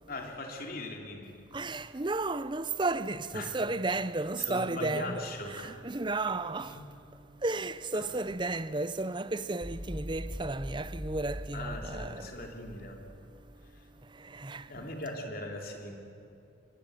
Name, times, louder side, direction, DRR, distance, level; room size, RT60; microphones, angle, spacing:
voice 1, 0.1-1.3 1.6-1.8 3.3-3.5 4.4-5.8 6.2-6.3 6.6-6.8 7.9-8.1 11.5-13.0 13.7-13.8 14.6-16.0, left 2 dB, 50° left, 3.1 m, -40 dB
voice 2, 1.5-6.7 7.4-12.3 14.3-14.8, right 2 dB, 25° right, 0.6 m, -33 dB
sound 1, 9.6-13.8, equal, 5° right, 3.8 m, -42 dB
24.5 x 22.5 x 9.3 m
head